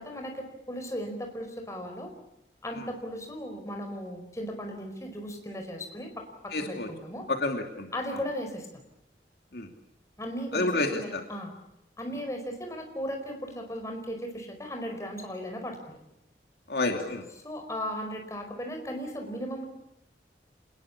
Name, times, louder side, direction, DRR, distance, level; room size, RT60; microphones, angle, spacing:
voice 1, 0.0-2.1 2.6-7.3 7.9-8.8 10.2-11.5 12.0-16.0 17.4-19.7, equal, 15° left, 3 dB, 4.9 m, -36 dB
voice 2, 6.5-6.9 7.3-7.9 9.5-9.7 10.5-11.2 16.7-17.2, left 2 dB, 60° left, 3 dB, 2.8 m, -29 dB
27.5 x 20.5 x 8.5 m, 0.84 s
head